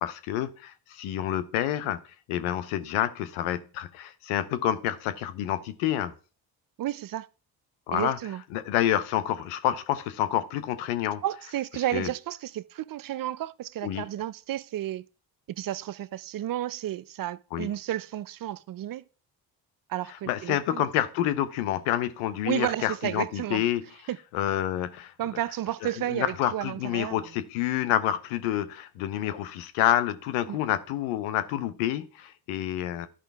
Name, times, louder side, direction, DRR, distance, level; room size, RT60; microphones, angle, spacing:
voice 1, 0.0-2.0 2.3-6.1 7.9-8.2 8.5-11.2 11.9-12.1 13.8-14.1 17.5-17.7 20.3-23.8 24.3-25.1 26.1-33.1, left 12 dB, 85° left, 0.8 m, -28 dB
voice 2, 6.8-7.3 7.9-8.4 11.2-15.0 15.5-19.0 19.9-20.8 22.4-23.6 24.1-24.2 25.2-27.2 30.5-30.6, right 13 dB, 45° right, 0.5 m, -32 dB
12.5 x 5.2 x 3.4 m
hypercardioid pair, 50°, 49 cm